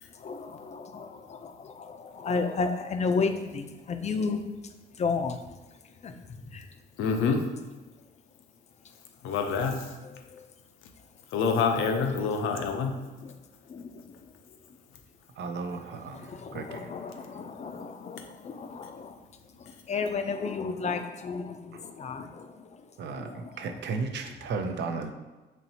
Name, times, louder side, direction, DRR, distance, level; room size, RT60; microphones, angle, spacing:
voice 1, 0.2-4.4 5.0-5.4 6.0-6.1 6.5-6.7 10.3-10.5 13.2-13.3 13.7-13.9 16.1-19.2 19.6-22.7 23.1-23.8, left 4 dB, 35° left, 0.4 m, -33 dB
voice 2, 7.0-7.4 9.2-9.9 11.3-13.0, left 5 dB, 85° left, 0.5 m, -26 dB
voice 3, 15.4-16.9 21.7-21.8 23.0-25.1, right 4 dB, 60° right, 0.5 m, -35 dB
4.3 x 3.0 x 2.7 m
cardioid pair, 90°, 20 cm